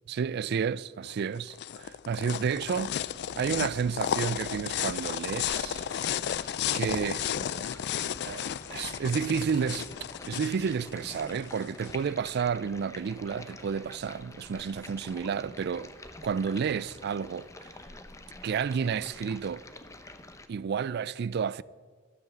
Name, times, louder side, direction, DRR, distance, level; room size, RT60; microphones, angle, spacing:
voice 1, 0.1-2.9 3.4-5.8 6.7-7.2 8.2-9.9 10.3-15.9 16.2-17.7 18.4-19.6 20.5-21.6, right 6 dB, 55° right, 0.3 m, -31 dB
sound 1, 1.1-11.9, left 9 dB, 55° left, 0.3 m, -33 dB
Stream, 5.5-20.5, left 2 dB, 15° left, 0.7 m, -47 dB
12.5 x 7.4 x 8.0 m
head